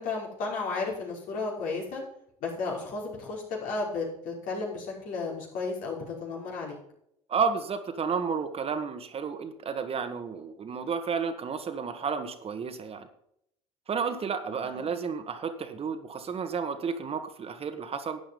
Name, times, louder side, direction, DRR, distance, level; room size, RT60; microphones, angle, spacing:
voice 1, 0.0-2.0 2.4-6.8 14.7-14.9, left 3 dB, 65° left, -2 dB, 5.2 m, -33 dB
voice 2, 7.3-13.1 13.9-18.2, right 6 dB, 40° right, 7 dB, 1.8 m, -31 dB
12.0 x 8.6 x 5.4 m, 0.73 s
hypercardioid pair, 65°, 15 cm